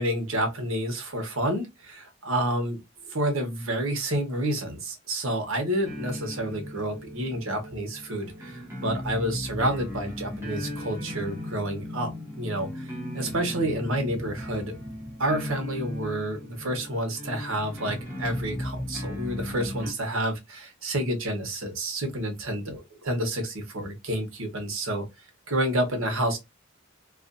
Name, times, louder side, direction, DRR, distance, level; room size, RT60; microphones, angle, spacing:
voice 1, 0.0-14.8 15.2-25.0 25.5-26.4, right 1 dB, 75° right, 0.9 m, -29 dB
sound 1, 5.8-19.9, left 1 dB, 10° right, 1.0 m, -36 dB
2.4 x 2.4 x 2.4 m
head